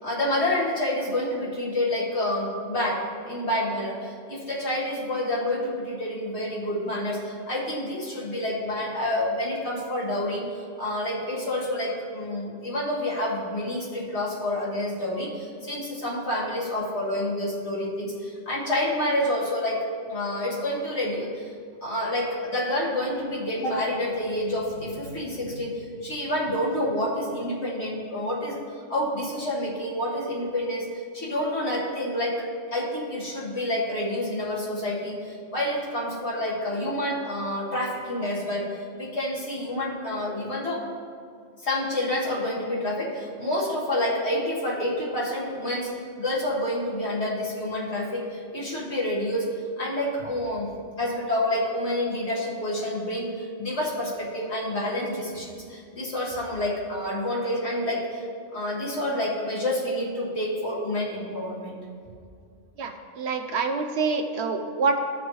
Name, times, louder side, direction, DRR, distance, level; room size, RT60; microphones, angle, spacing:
voice 1, 0.0-10.4 10.8-21.5 21.8-28.6 28.9-30.9 31.1-40.9 41.6-45.9 46.2-49.5 49.8-58.2 58.5-61.8, left 1 dB, 60° left, -6 dB, 1.9 m, -28 dB
voice 2, 62.8-65.0, right 4 dB, 65° right, 6 dB, 0.9 m, -26 dB
15.0 x 6.1 x 3.1 m, 2.2 s
omnidirectional pair, 1.3 m